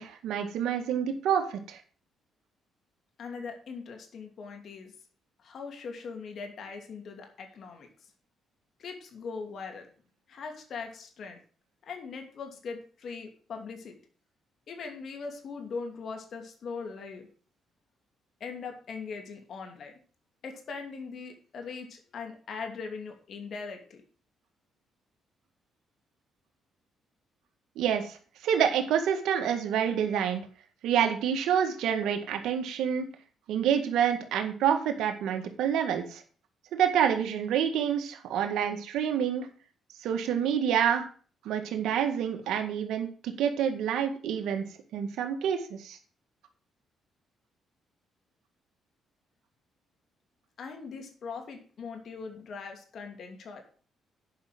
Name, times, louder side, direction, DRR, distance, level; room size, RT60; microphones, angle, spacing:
voice 1, 0.0-1.8 27.8-28.2 28.4-30.5 30.8-33.1 33.5-36.2 36.7-39.5 40.0-41.0 41.5-46.0, right 8 dB, 85° right, 5 dB, 1.8 m, -28 dB
voice 2, 3.2-4.9 5.4-7.9 8.8-9.9 10.3-11.4 11.8-13.9 14.7-17.3 18.4-19.9 20.4-24.0 50.6-53.6, left 5 dB, 60° left, 4 dB, 2.7 m, -40 dB
9.5 x 5.7 x 7.6 m, 0.41 s
cardioid pair, 90°, 0 cm